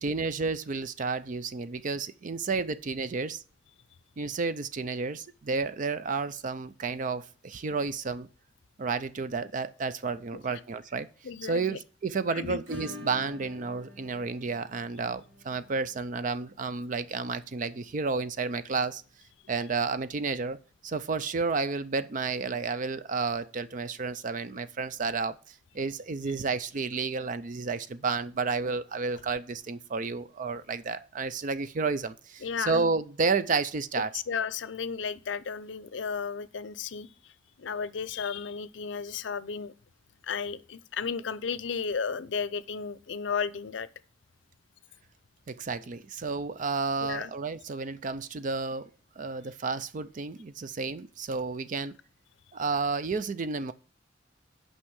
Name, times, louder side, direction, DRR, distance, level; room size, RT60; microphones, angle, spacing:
voice 1, 0.0-3.4 4.2-8.3 8.8-11.1 11.4-19.0 19.5-34.1 45.5-48.9 49.2-52.0 52.5-53.7, right 4 dB, 45° right, 0.4 m, -31 dB
voice 2, 11.2-11.8 12.3-12.6 32.4-32.8 34.0-37.3 37.6-39.7 40.2-43.9 47.0-47.3, left 6 dB, 75° left, 0.5 m, -34 dB
Acoustic guitar / Strum, 12.7-21.3 21.5-21.6 21.9-22.0 22.4-22.5 24.5-24.6 25.7-25.8, left 2 dB, 80° right, 2.2 m, -50 dB
6.0 x 5.5 x 6.3 m
head